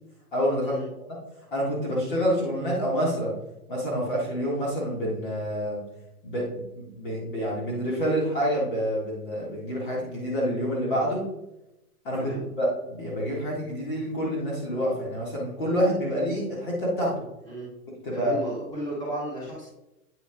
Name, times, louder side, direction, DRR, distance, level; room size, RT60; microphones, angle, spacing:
voice 1, 0.3-0.8 1.1-1.2 1.5-3.3 3.7-5.8 6.2-11.2 12.1-17.2 18.0-18.4, equal, 35° left, -5 dB, 1.7 m, -27 dB
voice 2, 18.1-19.7, right 1 dB, 10° left, -7 dB, 2.1 m, -34 dB
8.8 x 6.6 x 2.3 m, 0.91 s
hypercardioid pair, 175°, 46 cm